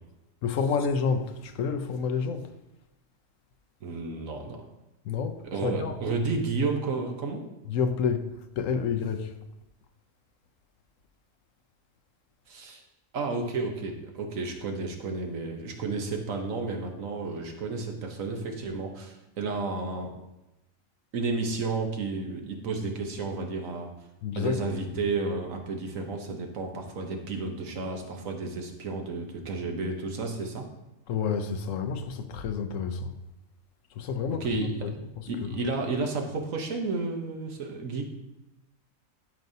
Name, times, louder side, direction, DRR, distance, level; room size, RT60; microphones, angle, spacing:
voice 1, 0.4-2.5 5.0-6.2 7.7-9.3 24.2-24.6 31.1-33.2 33.9-35.6, left 6 dB, 75° left, 1.0 m, -30 dB
voice 2, 3.8-4.6 5.5-7.4 12.5-12.8 13.1-20.1 21.1-23.9 24.4-30.7 34.3-34.9 35.3-38.0, right 3 dB, 75° right, 1.4 m, -32 dB
12.0 x 5.3 x 2.7 m
omnidirectional pair, 1.4 m